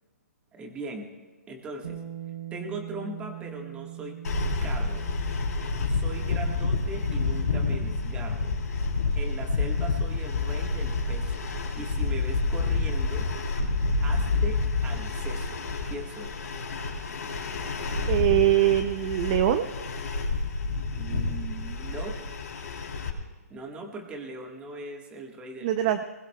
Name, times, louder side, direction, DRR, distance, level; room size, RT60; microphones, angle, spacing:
voice 1, 0.5-1.1 1.5-2.0 2.5-4.2 4.6-5.1 5.9-8.5 9.1-11.5 11.8-13.3 14.0-15.6 15.9-16.3 21.0-22.2 23.5-25.7, right 2 dB, 10° right, 3 dB, 1.5 m, -39 dB
Bass guitar, 1.8-8.1, right 12 dB, 60° right, 3.4 m, -42 dB
sound 1, 4.2-23.1, left 3 dB, 85° left, 3.3 m, -28 dB
voice 2, 18.1-19.7 25.6-26.0, right 12 dB, 30° right, 9 dB, 0.5 m, -23 dB
20.5 x 19.5 x 2.3 m, 1.4 s
hypercardioid pair, 155°, 9 cm